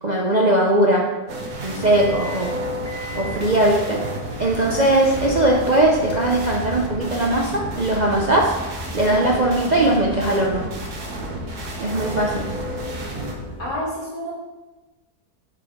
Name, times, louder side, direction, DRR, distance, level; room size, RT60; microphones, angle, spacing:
voice 1, 0.0-1.1 1.6-2.6 3.1-4.0 4.4-8.5 8.9-10.6 11.8-12.4, right 1 dB, 45° right, -2 dB, 0.5 m, -19 dB
sound 1, 1.3-13.3, right 1 dB, 75° right, 1.7 m, -32 dB
sound 2, 1.9-13.7, left 1 dB, 10° left, 1.1 m, -36 dB
voice 2, 12.8-13.1 13.6-14.3, equal, 85° left, -8 dB, 3.4 m, -30 dB
8.8 x 5.0 x 3.7 m, 1.2 s
omnidirectional pair, 1.7 m